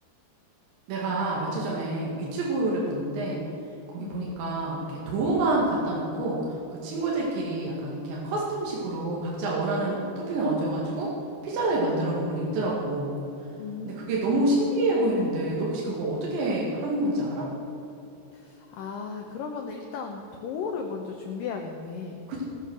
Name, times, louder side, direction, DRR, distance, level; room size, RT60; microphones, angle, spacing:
voice 1, 0.9-3.4 3.9-6.4 6.7-11.1 11.4-13.2 13.9-17.5 22.3-22.4, right 2 dB, 75° right, -4 dB, 4.3 m, -27 dB
voice 2, 13.6-14.6 18.3-22.2, left 5 dB, 90° left, 3 dB, 1.9 m, -36 dB
17.5 x 9.1 x 6.3 m, 3.0 s
omnidirectional pair, 5.3 m